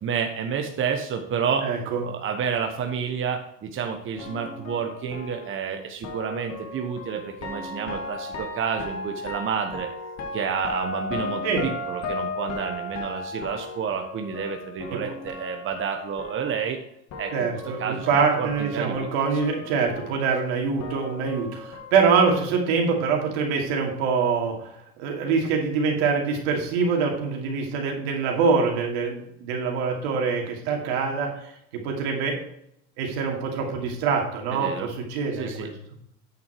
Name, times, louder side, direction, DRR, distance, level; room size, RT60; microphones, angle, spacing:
voice 1, 0.0-1.7 2.0-9.9 10.3-16.8 17.2-17.5 17.8-19.1 34.5-34.9 35.3-35.7, right 7 dB, 40° right, 5 dB, 1.1 m, -30 dB
voice 2, 1.6-2.0 11.4-11.6 14.9-15.0 17.3-24.7 25.0-32.4 33.0-35.7, right 5 dB, 75° right, 1 dB, 2.6 m, -24 dB
sound 1, 4.1-16.8 17.1-21.9, left 2 dB, 55° left, 2.3 m, -36 dB
9.2 x 6.2 x 4.7 m, 0.74 s
supercardioid pair, 90°, 33 cm